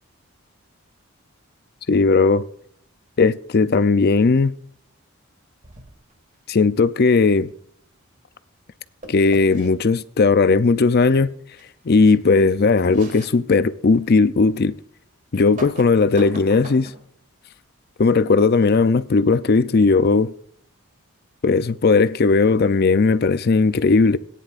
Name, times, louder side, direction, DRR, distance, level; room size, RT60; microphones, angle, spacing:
voice 1, 1.9-2.4 3.2-4.5 6.5-7.5 9.1-11.3 11.9-14.7 15.3-16.9 18.0-20.3 21.4-24.2, left 4 dB, 45° left, 0.5 m, -17 dB
sound 1, 5.6-6.1 9.0-9.7 11.6-11.7 12.1-12.2 12.9-13.4 13.9-14.0 15.3-17.1, right 1 dB, 35° right, 1.7 m, -39 dB
17.5 x 10.0 x 2.5 m
head